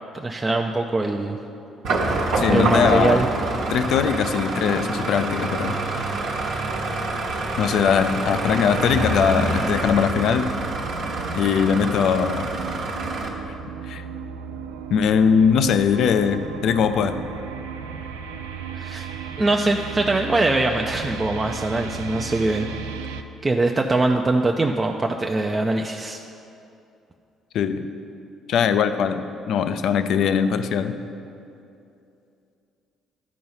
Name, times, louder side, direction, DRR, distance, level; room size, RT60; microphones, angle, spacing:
voice 1, 0.1-1.4 2.5-3.3 18.7-19.1 19.4-22.7 23.4-26.2, right 2 dB, 25° right, 2 dB, 0.5 m, -22 dB
sound 1, 1.8-13.3, right 2 dB, 65° right, 1.1 m, -26 dB
voice 2, 2.4-3.2 3.7-5.8 7.6-10.5 11.4-12.5 13.9-14.0 14.9-17.2 27.5-27.9 28.5-31.0, left 7 dB, 65° left, 10 dB, 0.4 m, -21 dB
sound 2, 9.5-23.2, right 6 dB, 80° right, 0.3 m, -35 dB
11.0 x 4.7 x 5.5 m, 2.6 s
hypercardioid pair, 50°, 0 cm